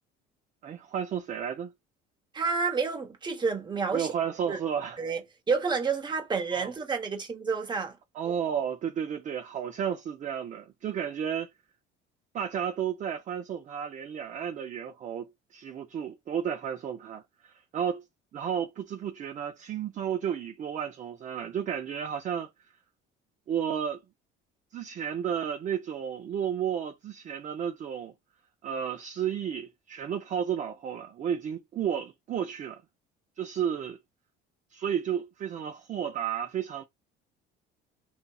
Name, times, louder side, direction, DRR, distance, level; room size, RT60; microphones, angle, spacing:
voice 1, 0.6-1.7 3.9-5.0 6.5-6.7 8.2-11.5 12.3-18.0 18.3-22.5 23.5-24.0 24.7-28.1 28.6-32.8 33.4-34.0 34.7-36.8, right 8 dB, 35° right, 0.4 m, -32 dB
voice 2, 2.3-4.1 4.5-4.6 5.0-5.2 5.5-8.0, right 5 dB, 20° right, 0.9 m, -29 dB
2.7 x 2.7 x 2.3 m
cardioid pair, 105°, 21 cm